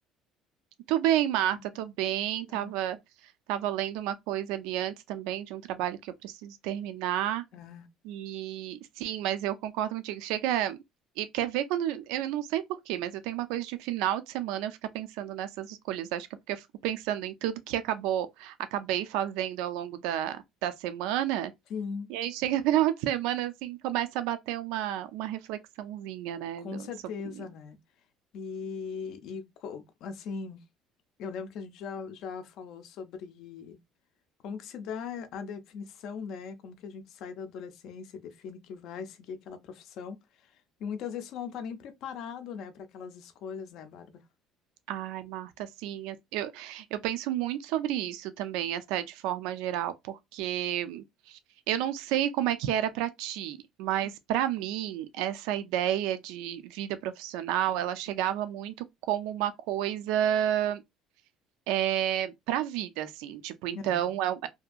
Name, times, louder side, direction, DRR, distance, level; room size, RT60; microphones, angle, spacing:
voice 1, 0.9-3.0 3.5-7.4 8.0-10.8 11.2-21.5 22.1-26.7 44.9-51.4 51.7-58.7 59.0-60.8 61.7-64.5, right 12 dB, 85° right, 0.4 m, -31 dB
voice 2, 1.6-1.9 2.5-2.7 7.5-7.9 21.7-22.1 26.6-27.8 28.3-30.6 31.2-33.8 34.4-44.2 63.7-64.1, left 6 dB, 50° left, 0.5 m, -40 dB
2.7 x 2.5 x 2.3 m
cardioid pair, 180°, 0 cm